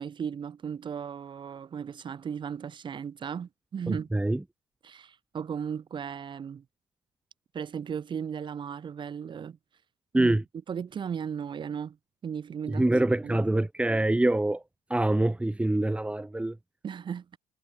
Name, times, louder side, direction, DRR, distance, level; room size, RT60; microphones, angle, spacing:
voice 1, 0.0-4.1 4.8-6.6 7.5-9.6 10.1-10.4 10.7-12.0 12.2-12.9 13.2-13.4 16.8-17.3, right 7 dB, 45° right, 7.8 m, -36 dB
voice 2, 3.9-4.4 10.1-10.4 12.7-14.6 14.9-16.6, right 1 dB, 10° right, 3.5 m, -25 dB
hypercardioid pair, 60°, 12 cm